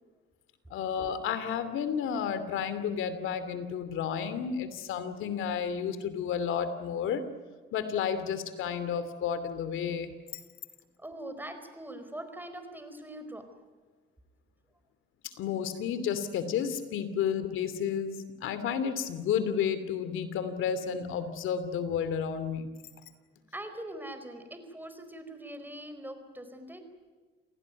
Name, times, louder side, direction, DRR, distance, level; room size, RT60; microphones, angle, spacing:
voice 1, 0.7-7.2 7.7-10.2 15.4-22.7, left 7 dB, 85° left, 12 dB, 2.8 m, -31 dB
voice 2, 11.0-13.5 23.5-26.8, right 1 dB, 10° right, 8 dB, 4.7 m, -42 dB
28.0 x 18.0 x 9.6 m, 1.4 s
cardioid pair, 90°, 20 cm